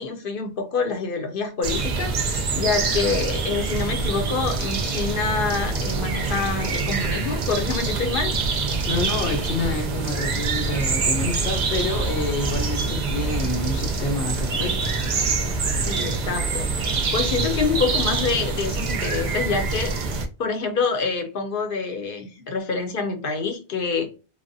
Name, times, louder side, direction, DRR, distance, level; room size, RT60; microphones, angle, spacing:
voice 1, 0.0-8.3 15.8-24.1, left 4 dB, 60° left, 0.7 m, -26 dB
sound 1, 1.6-20.2, right 4 dB, 60° right, 0.5 m, -25 dB
voice 2, 8.9-14.8, left 3 dB, 85° left, 0.9 m, -28 dB
3.2 x 2.1 x 2.5 m
omnidirectional pair, 1.1 m